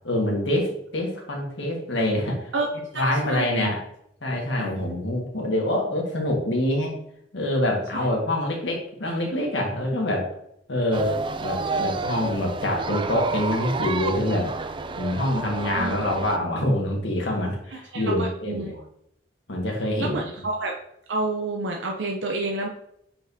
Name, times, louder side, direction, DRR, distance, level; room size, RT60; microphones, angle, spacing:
voice 1, 0.0-2.5 2.9-3.8 4.2-7.0 7.3-10.3 10.7-14.5 15.0-18.7 19.5-20.3, left 1 dB, 80° left, 0 dB, 1.7 m, -25 dB
voice 2, 2.9-3.7 4.6-4.7 7.9-8.1 15.7-15.9 17.7-18.7 20.0-20.8 21.1-22.7, right 2 dB, 75° right, 1 dB, 0.7 m, -29 dB
sound 1, 10.9-16.4, right 3 dB, 25° right, 0.4 m, -30 dB
7.6 x 4.5 x 2.8 m, 0.75 s
head